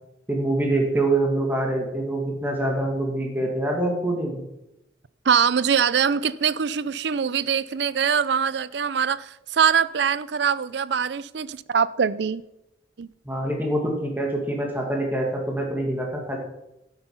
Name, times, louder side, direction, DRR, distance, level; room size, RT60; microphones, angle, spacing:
voice 1, 0.3-4.4 13.3-16.4, right 1 dB, 10° right, 0 dB, 2.1 m, -25 dB
voice 2, 5.3-12.4 13.0-13.1, right 7 dB, 65° right, 18 dB, 0.5 m, -23 dB
12.5 x 8.1 x 5.7 m, 0.87 s
head